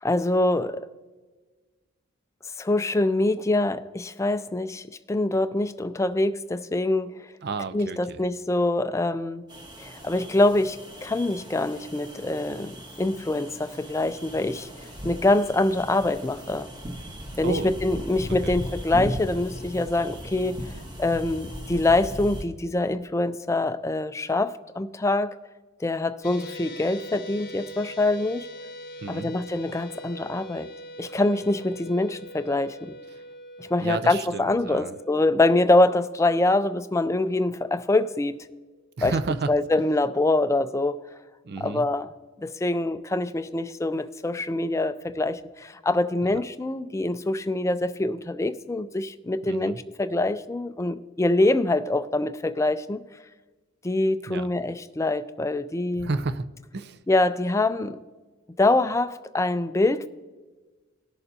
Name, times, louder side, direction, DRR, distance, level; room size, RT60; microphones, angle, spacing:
voice 1, 0.0-0.9 2.6-7.3 7.7-9.4 9.8-14.7 15.0-16.7 17.4-20.6 21.0-25.4 25.8-28.5 29.1-30.7 31.0-33.0 33.6-38.3 39.0-39.1 39.5-41.0 41.6-42.1 42.4-53.0 53.8-56.1 57.1-58.0 58.6-60.1, left 2 dB, 15° left, 11 dB, 0.4 m, -24 dB
voice 2, 7.4-8.2 17.4-17.8 18.4-18.6 29.0-29.3 33.1-33.2 33.8-35.0 39.0-39.5 41.4-41.9 49.4-49.8 54.3-54.5 56.0-56.4 56.7-57.0, right 3 dB, 50° right, 12 dB, 0.5 m, -31 dB
sound 1, 9.5-22.4, equal, 20° right, 1.3 m, -38 dB
sound 2, 26.2-38.6, equal, 45° left, 0.8 m, -43 dB
19.0 x 6.7 x 2.8 m, 1.3 s
head